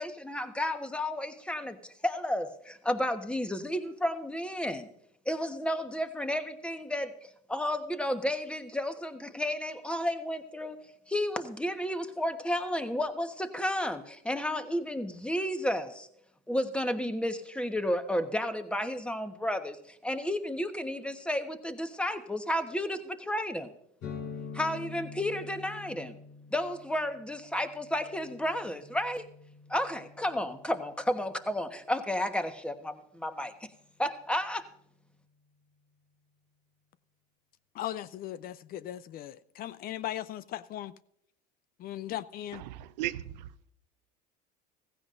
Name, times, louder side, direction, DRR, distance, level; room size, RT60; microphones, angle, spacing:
voice 1, 0.0-4.9 5.2-10.8 11.1-16.1 16.5-23.7 24.5-26.1 26.5-29.3 29.7-33.5 34.0-34.7, left 1 dB, 5° left, 1.2 m, -32 dB
sound 1, 24.0-31.6, left 5 dB, 70° left, 5.4 m, -46 dB
voice 2, 37.7-40.9 41.8-42.6, left 13 dB, 45° left, 0.5 m, -38 dB
voice 3, 42.7-43.7, right 14 dB, 85° right, 0.6 m, -37 dB
16.0 x 15.5 x 2.6 m
supercardioid pair, 100°, 21 cm